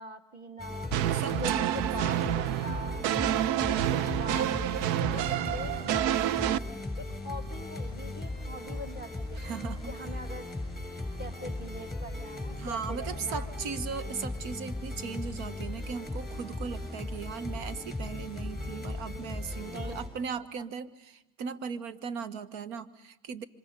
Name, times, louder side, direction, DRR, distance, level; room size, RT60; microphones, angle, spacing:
voice 1, 0.0-3.1 3.8-6.7 7.0-9.4 9.9-10.5 11.2-13.7 19.7-20.0 20.6-20.7, equal, 20° right, 7 dB, 1.9 m, -42 dB
sound 1, 0.6-20.1, left 2 dB, ahead, 7.6 m, -37 dB
sound 2, 0.9-6.6, right 12 dB, 85° right, 0.7 m, -28 dB
voice 2, 1.1-2.2 9.4-9.9 12.6-23.4, right 6 dB, 65° right, 13 dB, 1.4 m, -38 dB
27.0 x 25.5 x 5.4 m, 0.91 s
supercardioid pair, 120°, 50 cm